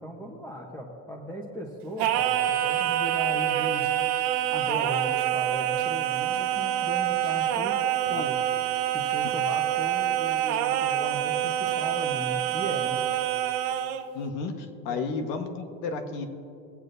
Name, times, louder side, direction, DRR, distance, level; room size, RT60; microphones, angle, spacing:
voice 1, 0.0-3.9 4.5-8.3 8.9-13.0 14.9-15.1, equal, 5° left, -5 dB, 1.0 m, -37 dB
Singing, 2.0-14.1, right 12 dB, 85° right, 1.0 m, -26 dB
voice 2, 14.1-16.2, left 4 dB, 90° left, 5 dB, 1.5 m, -32 dB
22.5 x 8.3 x 2.7 m, 2.6 s
cardioid pair, 150°, 44 cm